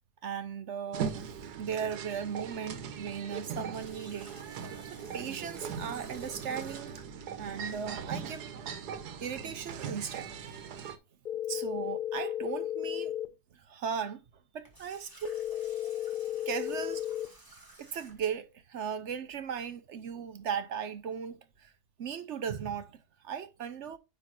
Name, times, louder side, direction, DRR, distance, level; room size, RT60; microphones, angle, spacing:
voice 1, 0.2-1.2 1.6-4.5 4.8-6.9 7.4-8.5 9.2-10.9 11.3-13.1 13.5-14.2 14.5-15.3 16.5-17.3 17.8-21.7 22.0-24.0, right 7 dB, 60° right, 0.8 m, -37 dB
sound 1, 0.9-11.0, right 7 dB, 85° right, 1.4 m, -40 dB
Water tap faucet, 3.7-7.1 14.5-18.4, right 1 dB, 15° right, 1.8 m, -54 dB
sound 2, 11.3-13.3 15.3-17.3, left 11 dB, 70° left, 0.4 m, -34 dB
9.1 x 3.2 x 4.2 m
omnidirectional pair, 1.7 m